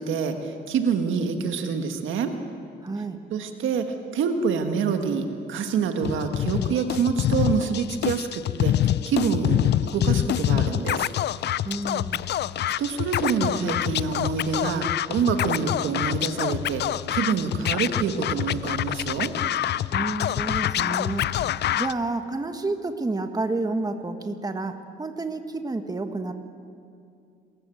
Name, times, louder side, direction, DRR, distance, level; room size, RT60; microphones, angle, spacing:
voice 1, 0.0-2.3 3.3-3.9 4.1-11.1 12.8-16.8 17.1-19.3, right 6 dB, 80° right, 6 dB, 1.7 m, -26 dB
voice 2, 2.8-3.2 11.6-12.3 19.9-21.3 21.7-26.3, right 3 dB, 20° right, 7 dB, 1.5 m, -30 dB
Scratching (performance technique), 6.0-21.9, left 12 dB, 60° left, 0.5 m, -26 dB
26.5 x 14.5 x 7.9 m, 2.4 s
cardioid pair, 90°, 20 cm